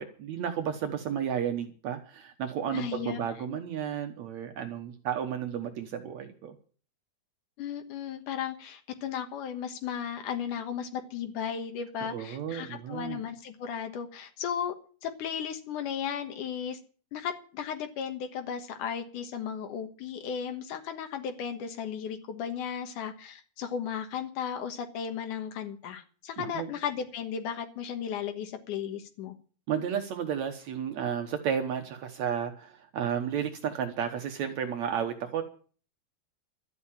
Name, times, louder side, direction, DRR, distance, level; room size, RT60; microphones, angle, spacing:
voice 1, 0.0-6.6 12.0-13.2 26.4-26.7 29.7-35.4, right 8 dB, 70° right, 6 dB, 2.3 m, -32 dB
voice 2, 2.7-3.6 7.6-14.7 15.0-16.8 17.1-29.3, left 8 dB, 90° left, 6 dB, 2.9 m, -35 dB
12.5 x 9.4 x 8.7 m, 0.42 s
omnidirectional pair, 3.5 m